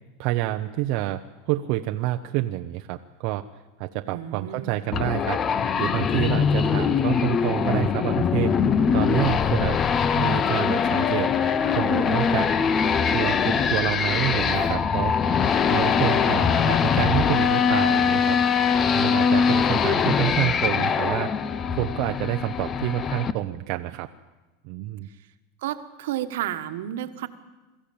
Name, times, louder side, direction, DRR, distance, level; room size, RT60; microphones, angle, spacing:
voice 1, 0.2-1.2 1.5-3.4 3.8-5.4 5.8-8.5 8.9-9.8 10.2-11.3 11.7-12.5 13.1-15.1 15.7-18.4 18.9-21.3 21.7-24.1 24.6-25.1, right 15 dB, 50° right, 6 dB, 0.7 m, -28 dB
voice 2, 4.1-4.8 14.5-14.7 25.6-27.3, right 12 dB, 75° right, 10 dB, 1.4 m, -32 dB
sound 1, 4.9-23.3, left 6 dB, 25° left, 0.8 m, -22 dB
22.0 x 14.5 x 8.6 m, 1.1 s
supercardioid pair, 150°, 0 cm